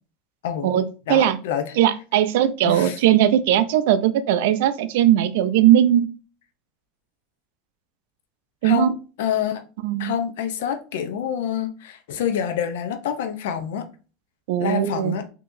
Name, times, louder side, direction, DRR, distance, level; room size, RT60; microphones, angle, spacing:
voice 1, 1.1-1.7 2.6-3.0 8.6-8.9 9.2-9.6 10.0-13.8 14.6-15.2, left 8 dB, 85° left, 7 dB, 0.5 m, -27 dB
voice 2, 1.8-6.1 8.6-9.0 9.8-10.1 14.5-15.2, right 11 dB, 80° right, 13 dB, 0.4 m, -19 dB
3.7 x 2.8 x 2.5 m, 0.35 s
supercardioid pair, 125°, 0 cm